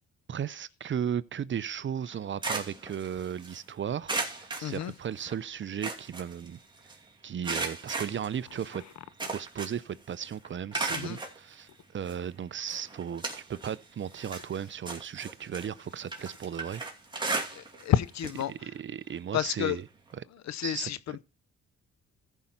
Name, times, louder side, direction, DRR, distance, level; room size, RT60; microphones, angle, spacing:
voice 1, 0.3-6.6 7.2-8.8 9.3-11.7 11.9-13.2 13.5-16.8 17.2-17.5 18.5-19.8 20.2-20.3 20.6-21.2, right 8 dB, 40° right, 0.6 m, -35 dB
sound 1, 2.0-3.6 4.1-5.3 5.6-6.9 7.4-9.9 10.2-11.4 12.1-12.2 12.7-13.8 14.1-17.9 18.2-18.4 18.8-18.9 20.1-20.2, right 3 dB, 15° right, 2.6 m, -36 dB
voice 2, 4.6-4.9 10.9-11.2 17.5-18.5 19.3-19.8 20.4-21.2, left 11 dB, 65° left, 0.7 m, -30 dB
14.5 x 5.5 x 4.4 m
cardioid pair, 90°, 30 cm